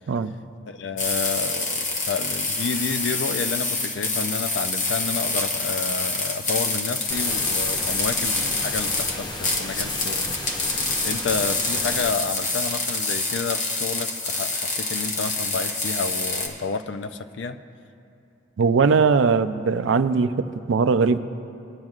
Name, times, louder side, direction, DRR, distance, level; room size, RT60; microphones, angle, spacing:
voice 1, 0.7-17.6, left 5 dB, 65° left, 10 dB, 0.4 m, -30 dB
sound 1, 1.0-16.5, left 3 dB, 40° left, 1.0 m, -26 dB
sound 2, 7.1-12.1, left 1 dB, 20° left, 0.6 m, -34 dB
voice 2, 18.6-21.2, right 5 dB, 70° right, 12 dB, 0.4 m, -20 dB
19.0 x 10.5 x 2.4 m, 2.9 s
head